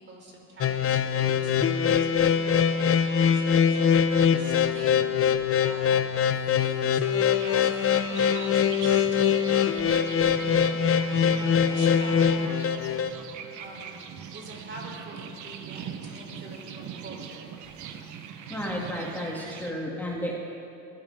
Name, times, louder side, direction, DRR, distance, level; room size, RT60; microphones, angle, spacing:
voice 1, 0.0-5.1 5.5-6.0 6.5-13.2 13.6-17.6, right 2 dB, 40° right, 0 dB, 4.0 m, -45 dB
sound 1, 0.6-13.1, left 7 dB, 45° left, 0.9 m, -23 dB
sound 2, 7.3-19.7, right 8 dB, 70° right, 1.2 m, -41 dB
voice 2, 18.5-20.4, equal, 5° left, -4 dB, 2.7 m, -32 dB
23.0 x 16.5 x 3.8 m, 2.9 s
cardioid pair, 105°, 31 cm